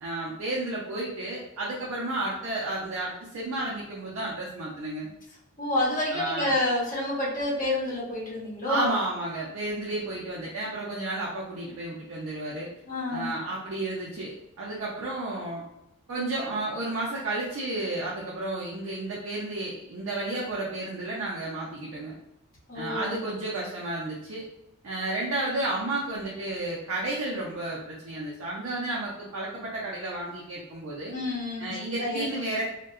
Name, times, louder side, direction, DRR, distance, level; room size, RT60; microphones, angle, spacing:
voice 1, 0.0-5.1 6.1-6.6 8.7-12.7 13.1-15.6 16.1-22.2 22.7-24.4 24.8-31.2 31.6-32.6, right 2 dB, 70° right, -5 dB, 0.5 m, -32 dB
voice 2, 5.6-8.9 12.9-13.3 22.7-23.2 31.1-31.7 32.0-32.2, left 1 dB, 40° left, -7 dB, 0.9 m, -28 dB
2.6 x 2.1 x 2.4 m, 0.86 s
head